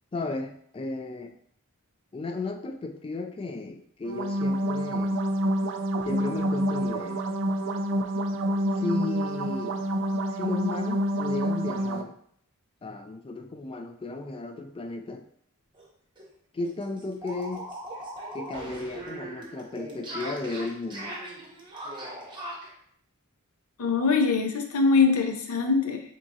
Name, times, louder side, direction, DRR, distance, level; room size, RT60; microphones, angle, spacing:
voice 1, 0.1-1.3 2.1-5.2 6.0-7.2 8.8-9.8 10.3-12.1 12.8-15.3 16.5-17.6 18.3-21.2, left 3 dB, 25° left, 5 dB, 0.3 m, -34 dB
sound 1, 4.0-12.0, equal, 60° right, 0.4 m, -27 dB
sound 2, 15.7-15.9 16.2-16.3 16.6-22.7, right 1 dB, 20° right, 0.8 m, -39 dB
voice 2, 23.8-26.0, left 4 dB, 75° left, 5 dB, 0.6 m, -23 dB
3.9 x 3.6 x 2.7 m, 0.66 s
head